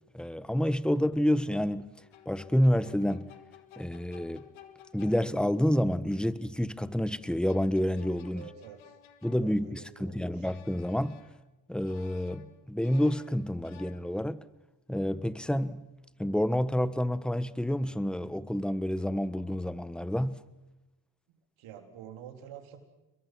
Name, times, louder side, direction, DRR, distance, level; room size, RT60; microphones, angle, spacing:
voice 1, 0.1-1.9 2.2-3.3 3.8-4.4 4.9-8.4 9.2-11.2 11.7-14.4 14.9-15.8 16.2-20.4, equal, ahead, 1.3 m, -29 dB
sound 1, 2.0-5.7 7.3-10.0 10.4-11.5 11.8-14.5, left 10 dB, 80° left, 2.2 m, -56 dB
voice 2, 8.3-9.0 9.3-10.5 21.3-22.8, right 9 dB, 80° right, 3.9 m, -48 dB
29.5 x 22.5 x 6.2 m
supercardioid pair, 60°, 47 cm